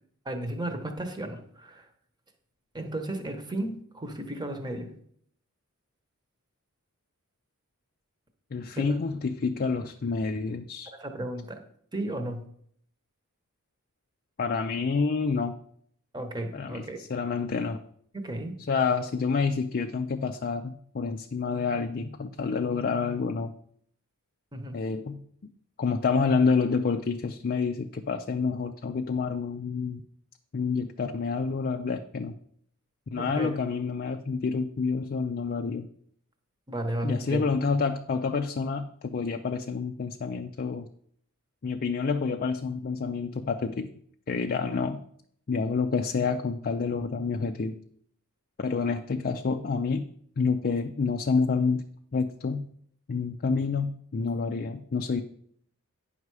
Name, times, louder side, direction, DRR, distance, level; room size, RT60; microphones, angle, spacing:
voice 1, 0.2-1.9 2.7-4.9 8.7-9.0 11.0-11.6 11.9-12.4 16.1-17.0 18.1-18.5 24.5-24.7 33.2-33.5 36.7-37.4, right 1 dB, 20° right, 6 dB, 1.1 m, -34 dB
voice 2, 8.5-10.9 14.4-15.6 16.5-17.8 18.7-23.5 24.7-25.2 25.8-30.0 30.5-32.3 33.1-35.9 37.0-40.9 41.6-43.9 44.3-45.0 45.5-47.8 48.6-50.1 50.4-51.8 52.1-52.7 53.1-55.2, left 4 dB, 40° left, 5 dB, 0.4 m, -28 dB
9.5 x 5.7 x 4.8 m, 0.65 s
head